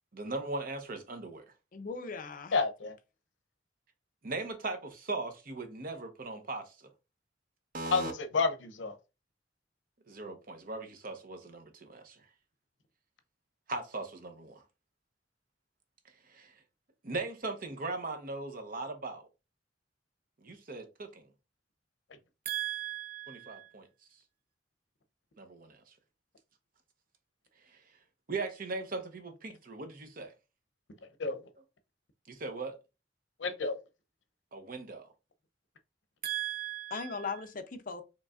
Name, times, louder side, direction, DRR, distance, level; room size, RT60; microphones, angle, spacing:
voice 1, 0.1-1.4 4.2-6.9 7.7-8.1 10.1-12.2 13.7-14.6 16.3-16.6 17.0-19.3 20.4-21.3 22.4-23.9 25.4-25.8 28.3-30.3 32.3-32.8 34.5-35.1 36.2-37.4, right 4 dB, 50° right, 0.8 m, -38 dB
voice 2, 1.7-2.6 36.9-38.0, left 4 dB, 50° left, 0.6 m, -38 dB
voice 3, 2.5-2.9 7.9-8.9 31.2-31.4 33.4-33.8, left 4 dB, 85° left, 0.7 m, -30 dB
5.2 x 3.1 x 2.4 m
head